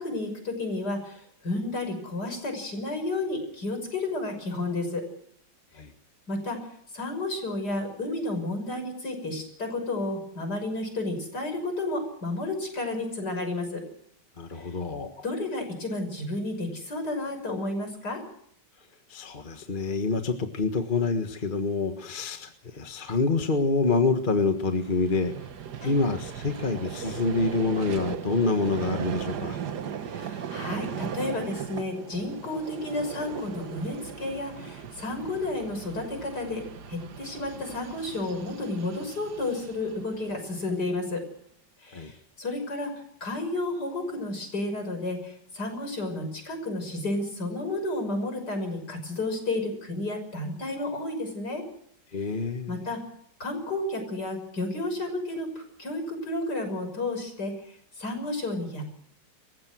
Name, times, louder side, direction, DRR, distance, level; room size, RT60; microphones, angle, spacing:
voice 1, 0.0-5.0 5.7-5.8 6.3-6.7 6.9-13.8 14.5-14.7 15.2-18.2 25.8-25.9 30.1-41.2 41.8-51.6 52.2-52.3 52.7-53.0 53.4-58.8, left 2 dB, 60° left, 5 dB, 6.7 m, -32 dB
voice 2, 14.4-15.2 19.1-25.5 25.8-29.6 41.9-42.1 52.1-52.8, left 3 dB, 30° left, 6 dB, 1.6 m, -27 dB
Vehicle, 24.5-40.9, right 8 dB, 65° right, 1.8 m, -38 dB
27.5 x 15.5 x 6.2 m, 0.68 s
omnidirectional pair, 2.0 m